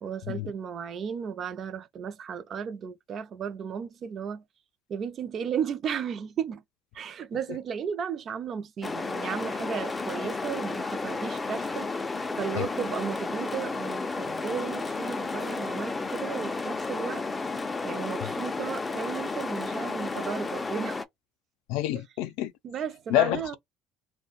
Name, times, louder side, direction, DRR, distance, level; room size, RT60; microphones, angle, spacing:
voice 1, 0.0-4.4 4.9-6.6 6.9-11.9 12.4-17.2 17.8-21.0 22.6-23.6, right 7 dB, 40° right, 0.5 m, -34 dB
sound 1, 8.8-21.0, left 3 dB, 15° left, 0.4 m, -32 dB
voice 2, 21.7-22.5 23.1-23.6, left 14 dB, 80° left, 0.4 m, -27 dB
2.4 x 2.1 x 3.9 m
cardioid pair, 125°, 0 cm